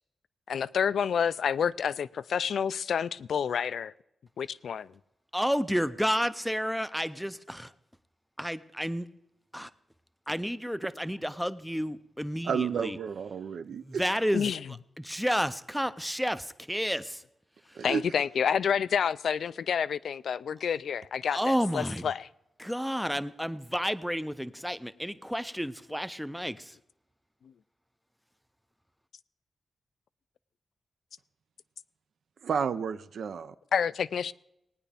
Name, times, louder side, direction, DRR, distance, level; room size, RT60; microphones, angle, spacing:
voice 1, 0.5-3.9 4.4-4.9 14.3-14.6 17.8-22.3 33.7-34.3, left 7 dB, 70° left, 0.3 m, -29 dB
voice 2, 5.3-7.7 8.4-9.1 9.5-9.7 10.3-13.0 13.7-14.5 15.0-17.2 21.3-22.1 22.6-26.8, equal, ahead, 0.4 m, -31 dB
voice 3, 12.4-14.0 17.8-18.0 32.4-33.5, right 7 dB, 65° right, 0.5 m, -31 dB
19.0 x 9.9 x 3.4 m
wide cardioid pair, 160°, 0 cm